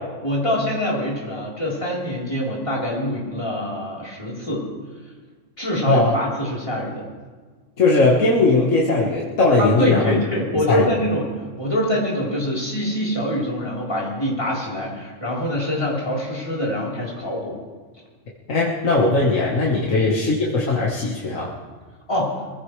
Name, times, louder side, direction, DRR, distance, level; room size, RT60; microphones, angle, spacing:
voice 1, 0.2-4.7 5.6-7.0 9.6-11.3 11.6-17.6 19.7-19.9 22.1-22.4, equal, 25° left, -5 dB, 4.0 m, -24 dB
voice 2, 7.8-10.2 10.5-10.9 18.5-21.5, left 3 dB, 80° left, -3 dB, 2.0 m, -19 dB
23.0 x 16.0 x 3.3 m, 1.5 s
omnidirectional pair, 1.3 m